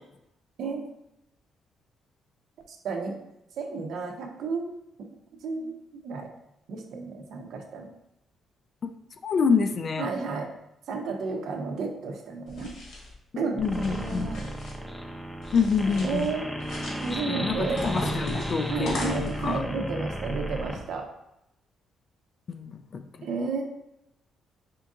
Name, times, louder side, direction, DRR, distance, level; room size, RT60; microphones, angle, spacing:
voice 1, 2.7-3.2 3.6-4.7 5.4-5.8 6.0-6.3 6.7-7.9 10.0-10.5 10.9-12.7 13.4-13.6 13.9-14.6 15.9-16.5 17.0-17.8 18.7-21.1 23.2-23.6, right 4 dB, 75° right, 3 dB, 0.7 m, -32 dB
voice 2, 9.2-10.1 13.6-14.3 15.5-16.3 17.3-19.6 22.5-23.3, left 5 dB, 50° left, 7 dB, 0.4 m, -27 dB
sound 1, 12.5-13.1 13.6-14.8 15.4-16.3 16.6-17.2 17.8-19.5, left 1 dB, 80° left, 1.5 m, -37 dB
sound 2, 13.6-20.8, equal, 5° left, 0.6 m, -34 dB
4.5 x 2.6 x 3.6 m, 0.84 s
cardioid pair, 90°, 0 cm